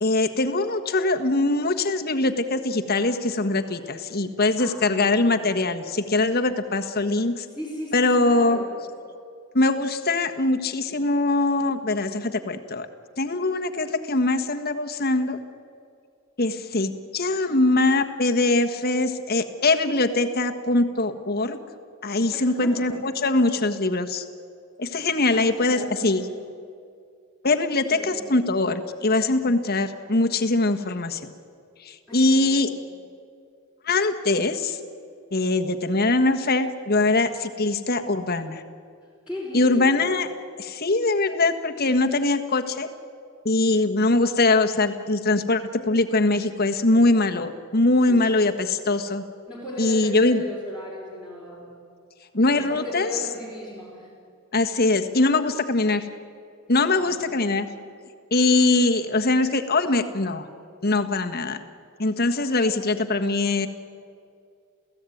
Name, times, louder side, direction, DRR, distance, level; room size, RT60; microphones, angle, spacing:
voice 1, 0.0-7.4 7.9-8.6 9.5-12.9 13.2-15.4 16.4-21.6 22.0-24.2 24.8-26.2 27.4-31.3 31.8-32.7 33.8-34.8 35.3-38.6 39.5-40.3 40.6-42.9 43.4-49.2 49.8-50.4 52.3-53.1 54.5-56.1 56.7-57.7 58.3-60.4 60.8-61.6 62.0-63.7, left 2 dB, 45° left, 6 dB, 1.5 m, -22 dB
voice 2, 4.6-5.7 7.5-8.8 22.3-23.8 25.3-26.4 27.9-28.4 32.1-32.7 39.3-40.1 48.1-48.4 49.5-51.9 52.5-54.1 57.0-57.6, left 1 dB, 5° right, -5 dB, 4.5 m, -38 dB
29.0 x 16.5 x 9.3 m, 2.3 s
head